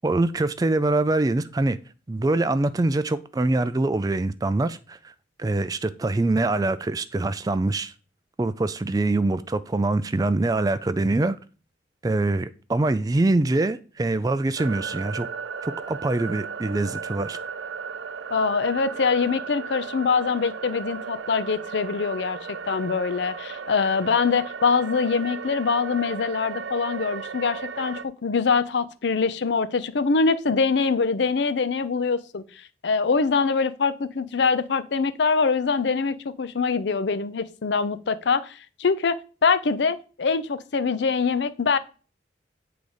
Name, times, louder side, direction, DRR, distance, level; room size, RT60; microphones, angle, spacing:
voice 1, 0.0-1.8 2.1-5.1 5.4-7.9 8.4-11.4 12.0-15.3 15.6-17.4, right 2 dB, 20° right, 0.3 m, -24 dB
sound 1, 14.6-28.0, right 6 dB, 80° right, 0.5 m, -35 dB
voice 2, 18.3-32.4 32.8-41.8, left 5 dB, 65° left, 0.5 m, -24 dB
8.6 x 3.9 x 4.8 m
head